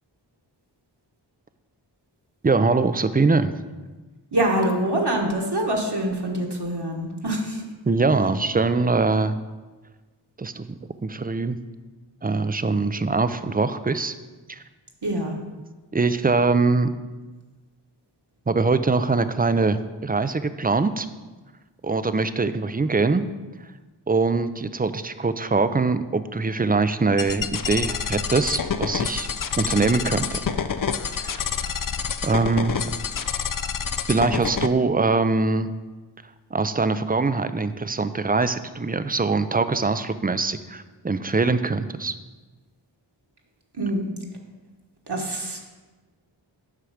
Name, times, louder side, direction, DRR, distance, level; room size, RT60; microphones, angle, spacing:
voice 1, 2.4-3.5 7.9-9.4 10.4-11.6 12.2-14.1 14.5-14.6 15.9-16.9 18.5-21.1 21.8-23.2 24.1-29.3 29.6-30.4 31.1-31.4 32.2-32.8 34.1-35.7 36.5-42.1, right 3 dB, 20° right, 12 dB, 0.4 m, -23 dB
voice 2, 4.3-7.6 15.0-15.4 43.7-44.1 45.1-45.7, right 1 dB, 60° right, 0 dB, 1.4 m, -25 dB
sound 1, 27.2-34.7, left 7 dB, 45° left, 0.5 m, -28 dB
8.1 x 5.8 x 5.0 m, 1.3 s
wide cardioid pair, 45°, 46 cm